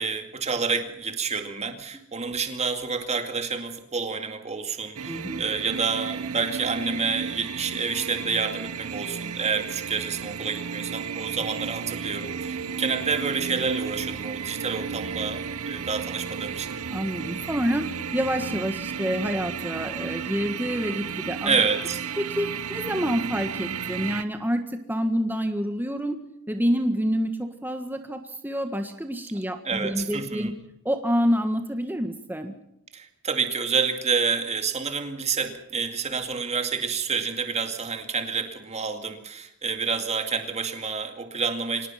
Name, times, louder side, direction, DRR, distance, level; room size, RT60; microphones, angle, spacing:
voice 1, 0.0-16.7 21.4-22.0 29.6-30.5 32.9-41.9, right 5 dB, 30° right, 6 dB, 2.3 m, -28 dB
sound 1, 5.0-24.2, right 6 dB, 90° right, 0.8 m, -33 dB
voice 2, 5.1-5.4 16.9-17.8 18.1-21.6 22.2-26.2 26.5-30.5 30.8-32.5, equal, 10° right, 6 dB, 1.5 m, -27 dB
25.0 x 18.5 x 5.9 m, 0.78 s
head